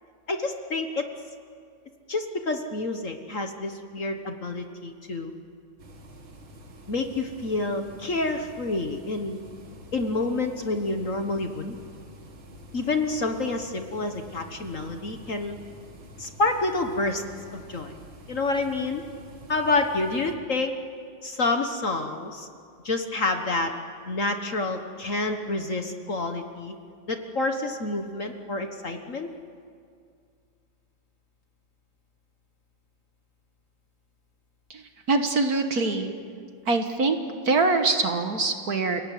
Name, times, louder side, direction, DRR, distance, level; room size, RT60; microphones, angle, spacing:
voice 1, 0.3-1.1 2.1-5.3 6.9-9.4 9.9-11.8 12.7-15.6 16.2-17.2 17.5-17.9 18.3-19.0 19.5-20.7 21.2-22.5 22.8-23.7 24.1-26.7 27.1-29.3, left 2 dB, 45° left, 5 dB, 1.5 m, -28 dB
sound 1, 5.8-20.3, equal, 70° right, 2.9 m, -47 dB
voice 2, 34.7-36.1 36.7-37.2 37.4-39.1, right 3 dB, 50° right, 6 dB, 1.8 m, -24 dB
29.5 x 18.0 x 9.3 m, 2.3 s
omnidirectional pair, 2.2 m